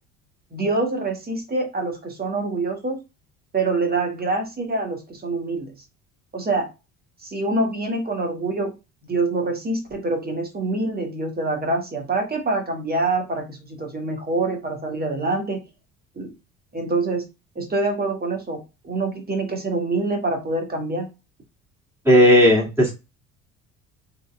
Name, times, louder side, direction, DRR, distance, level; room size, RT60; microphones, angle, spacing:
voice 1, 0.5-3.0 3.5-5.7 6.3-6.7 7.2-8.7 9.1-15.6 16.2-16.3 16.7-17.2 17.5-21.1, right 2 dB, 20° right, 2 dB, 1.7 m, -25 dB
voice 2, 22.1-22.9, equal, 5° right, -5 dB, 2.3 m, -14 dB
6.1 x 2.9 x 2.3 m, 0.27 s
figure-of-eight pair, 55°, 42 cm